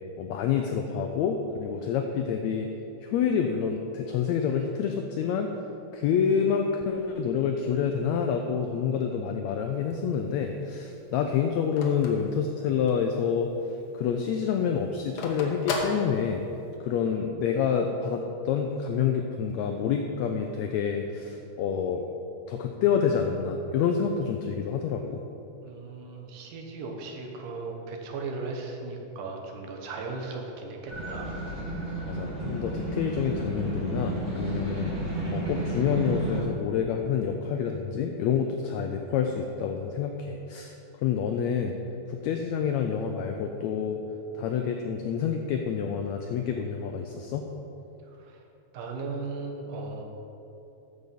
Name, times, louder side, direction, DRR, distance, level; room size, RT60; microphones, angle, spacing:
voice 1, 0.2-2.7 3.0-5.5 5.9-13.5 13.9-16.4 16.8-22.1 22.5-25.2 32.0-34.9 35.3-41.7 42.1-44.0 44.3-47.4, left 7 dB, 90° left, 4 dB, 1.6 m, -28 dB
Telephone, 9.7-13.1 13.5-13.6 13.9-16.8, left 3 dB, 65° left, 1.4 m, -36 dB
voice 2, 25.6-31.4 48.1-48.4 48.7-50.0, right 3 dB, 80° right, 2 dB, 2.7 m, -37 dB
sound 1, 30.9-36.4, right 1 dB, 25° right, 1.9 m, -32 dB
10.5 x 7.0 x 5.3 m, 2.9 s
omnidirectional pair, 3.8 m